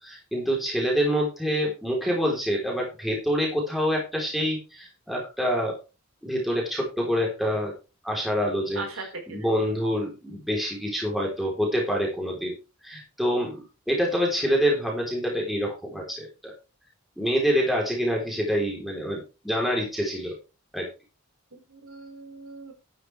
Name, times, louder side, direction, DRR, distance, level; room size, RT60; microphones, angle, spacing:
voice 1, 0.0-5.8 6.2-7.7 8.0-8.8 9.3-12.6 12.8-16.5 17.2-20.4 20.7-20.9, equal, ahead, -2 dB, 3.6 m, -26 dB
voice 2, 8.7-9.5 21.5-22.7, right 3 dB, 70° right, 3 dB, 4.6 m, -39 dB
11.5 x 9.9 x 3.3 m, 0.30 s
head